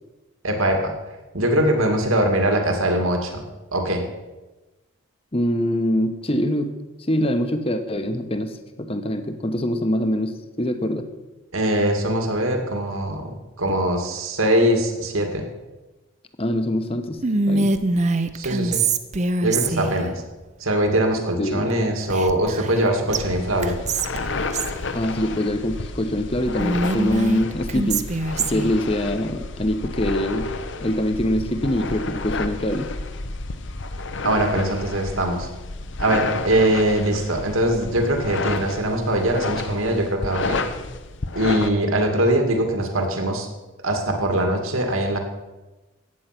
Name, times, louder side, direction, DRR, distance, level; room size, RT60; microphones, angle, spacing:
voice 1, 0.4-0.9 1.3-3.4 3.7-4.0 11.5-15.5 18.3-18.8 19.4-20.2 20.6-23.8 34.2-35.5 36.0-40.6 41.4-43.5 43.8-45.2, right 1 dB, 80° right, 4 dB, 2.3 m, -22 dB
voice 2, 5.3-6.7 7.1-8.5 8.8-11.1 16.4-17.2 17.5-17.7 21.4-21.7 24.9-28.1 28.3-30.5 30.8-32.9, left 1 dB, 25° left, 8 dB, 1.0 m, -24 dB
Whispering, 17.2-20.1 22.1-22.8 23.1-23.2 23.6-24.8 26.6-28.7, right 3 dB, 35° right, 0.6 m, -23 dB
sound 1, 23.1-41.7, left 3 dB, 55° left, 0.9 m, -31 dB
14.5 x 9.4 x 6.0 m, 1.1 s
head